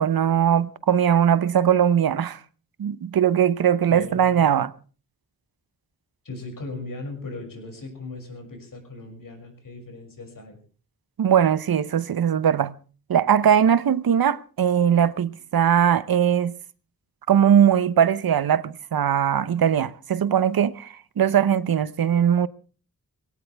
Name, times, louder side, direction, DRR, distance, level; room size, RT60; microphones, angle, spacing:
voice 1, 0.0-2.4 2.8-4.7 11.2-12.7 13.1-16.5 17.3-22.5, right 8 dB, 85° right, 0.8 m, -20 dB
voice 2, 3.9-4.4 6.2-10.6, left 3 dB, 70° left, 6.5 m, -38 dB
22.0 x 17.5 x 3.4 m
wide cardioid pair, 95°, 35 cm